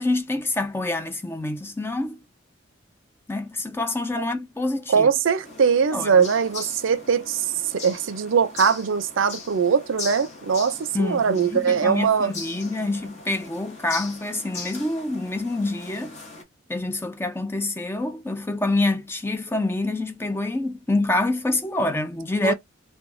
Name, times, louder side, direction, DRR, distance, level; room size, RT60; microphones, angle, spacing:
voice 1, 0.0-2.2 3.3-5.1 5.9-6.2 10.9-16.2 16.7-22.5, left 2 dB, 10° left, 0.4 m, -26 dB
voice 2, 4.9-12.3 22.4-22.5, right 6 dB, 70° right, 0.4 m, -21 dB
sound 1, 5.4-16.4, left 3 dB, 35° left, 0.9 m, -39 dB
3.1 x 2.2 x 2.5 m
head